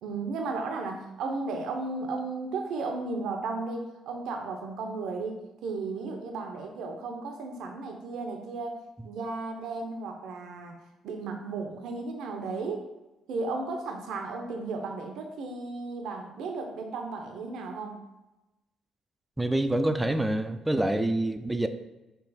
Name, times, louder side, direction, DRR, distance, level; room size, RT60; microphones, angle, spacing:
voice 1, 0.0-10.7 11.0-12.9 13.3-18.0, right 3 dB, 75° right, 4 dB, 0.6 m, -34 dB
voice 2, 19.4-21.7, right 1 dB, 10° right, 8 dB, 0.4 m, -26 dB
4.6 x 2.8 x 4.0 m, 1.0 s
supercardioid pair, 65°, 0 cm